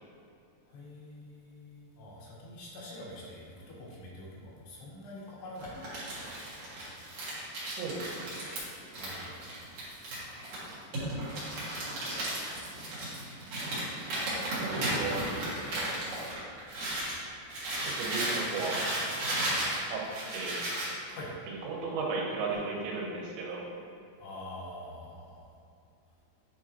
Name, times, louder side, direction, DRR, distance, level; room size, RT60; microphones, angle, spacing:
voice 1, 0.7-6.5 8.9-9.4 21.1-21.3 24.2-25.4, left 1 dB, 75° left, -4 dB, 3.2 m, -46 dB
Crumpling crinkling, 5.6-17.2 17.5-20.9, right 1 dB, 55° right, 2.4 m, -35 dB
voice 2, 7.6-8.4 14.6-15.6 17.8-18.8 19.9-20.0 20.3-20.6 21.5-23.7, right 3 dB, 85° right, -2 dB, 3.3 m, -35 dB
8.7 x 5.0 x 2.9 m, 2.6 s
omnidirectional pair, 5.0 m